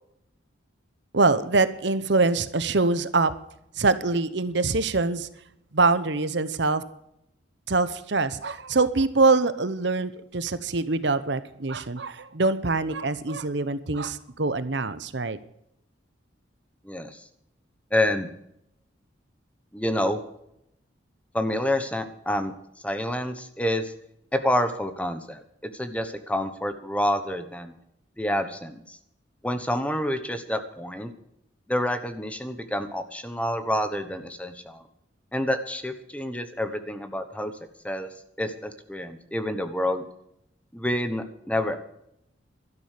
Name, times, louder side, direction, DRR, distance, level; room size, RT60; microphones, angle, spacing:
voice 1, 1.1-3.3 3.8-5.3 5.7-6.8 7.7-15.4, right 3 dB, 60° right, 14 dB, 0.9 m, -24 dB
voice 2, 16.8-17.2 17.9-18.3 19.7-20.2 21.3-22.5 22.8-23.9 24.3-25.4 25.8-27.7 28.2-29.0 29.4-31.1 31.7-34.8 35.3-37.5 37.8-38.1 38.4-40.0 40.7-41.8, left 1 dB, 5° left, 9 dB, 1.1 m, -28 dB
12.5 x 11.5 x 6.6 m, 0.77 s
head